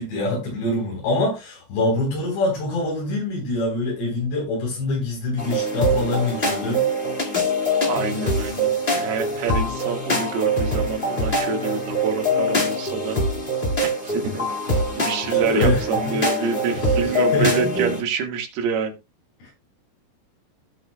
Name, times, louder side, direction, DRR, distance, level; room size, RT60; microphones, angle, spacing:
voice 1, 0.0-6.8 14.7-14.9 15.3-17.7 19.4-19.5, left 2 dB, 85° left, 6.2 m, -25 dB
sound 1, 5.4-18.0, equal, 45° left, 0.6 m, -23 dB
voice 2, 7.8-13.2 13.6-14.6 15.0-18.9, right 5 dB, 70° right, 3.5 m, -27 dB
16.0 x 6.5 x 2.2 m
omnidirectional pair, 4.9 m